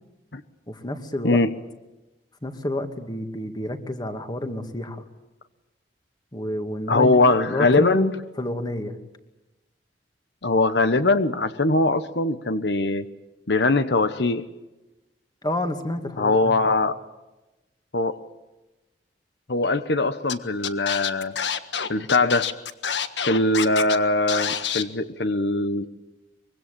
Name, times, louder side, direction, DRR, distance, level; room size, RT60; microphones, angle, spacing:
voice 1, 0.7-1.4 2.4-5.1 6.3-7.2 7.5-8.1 8.4-9.0 15.4-16.6, left 1 dB, 25° left, 7 dB, 2.3 m, -29 dB
voice 2, 6.9-8.1 10.4-13.0 13.5-14.4 16.2-16.9 17.9-18.2 19.5-21.3 21.9-22.5 23.3-25.9, left 2 dB, 70° left, 11 dB, 1.1 m, -21 dB
Scratching (performance technique), 20.3-20.4 20.6-24.0 24.3-24.8, left 7 dB, 90° left, 1.5 m, -27 dB
25.0 x 23.5 x 8.6 m, 1.0 s
head